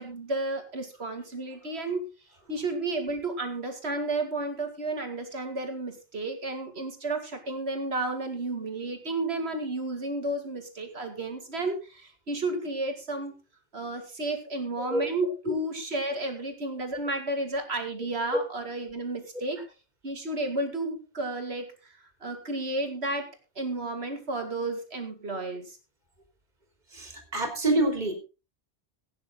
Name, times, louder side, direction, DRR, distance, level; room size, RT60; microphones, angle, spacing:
voice 1, 0.0-2.0 2.5-13.4 13.7-19.6 20.0-21.9 22.2-23.3 23.6-25.8, right 2 dB, 75° right, 5 dB, 2.7 m, -32 dB
voice 2, 26.9-28.1, right 2 dB, 45° right, 4 dB, 3.2 m, -26 dB
15.5 x 9.5 x 3.9 m, 0.31 s
omnidirectional pair, 1.1 m